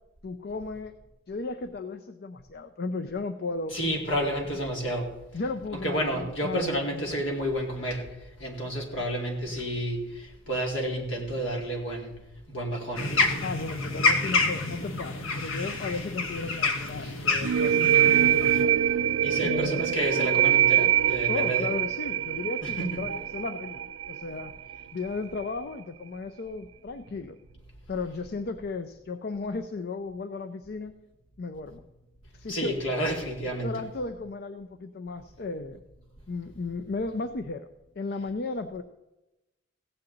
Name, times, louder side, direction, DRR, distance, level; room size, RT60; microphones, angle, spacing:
voice 1, 0.2-1.0 1.3-3.8 5.3-7.2 13.4-18.8 19.4-20.0 21.3-24.5 24.9-27.4 27.9-30.9 31.4-31.8 32.3-32.8 33.6-35.8 36.3-37.7 38.0-38.8, left 3 dB, 50° left, 9 dB, 0.5 m, -35 dB
voice 2, 3.7-5.1 5.8-8.1 8.4-12.1 12.5-13.1 17.0-17.3 19.2-21.7 22.6-23.0 32.5-33.7, right 1 dB, 65° left, 0 dB, 2.3 m, -30 dB
sound 1, 13.0-18.6, left 3 dB, 85° left, 1.1 m, -28 dB
sound 2, 17.4-24.8, right 10 dB, 80° right, 0.4 m, -24 dB
15.5 x 8.5 x 3.9 m, 0.99 s
head